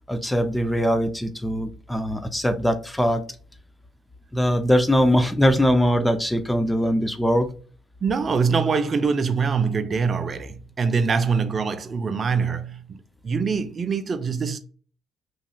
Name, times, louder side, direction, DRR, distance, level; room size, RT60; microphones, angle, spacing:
voice 1, 0.1-3.2 4.3-7.5, equal, 5° left, 0.6 m, -21 dB
voice 2, 8.0-14.6, right 5 dB, 40° right, 0.5 m, -24 dB
3.1 x 2.7 x 2.3 m
supercardioid pair, 70°, 0 cm